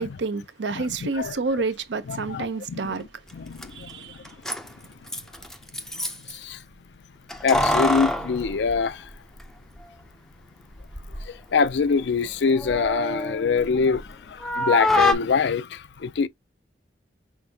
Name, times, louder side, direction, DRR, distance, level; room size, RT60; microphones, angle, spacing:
voice 1, 0.0-3.0 3.4-4.4, right 4 dB, 85° right, 0.6 m, -29 dB
voice 2, 0.7-1.3 2.1-3.0 3.3-4.2 5.0-5.2 5.7-6.7 7.4-9.1 11.1-16.3, left 5 dB, 80° left, 0.4 m, -25 dB
Keys jangling, 3.3-3.4 3.6-3.7 4.3-6.4 7.3-9.5 9.8-9.9 10.7-11.3 11.6-14.1 14.4-15.1, left 1 dB, ahead, 0.4 m, -26 dB
5.9 x 2.6 x 2.7 m
head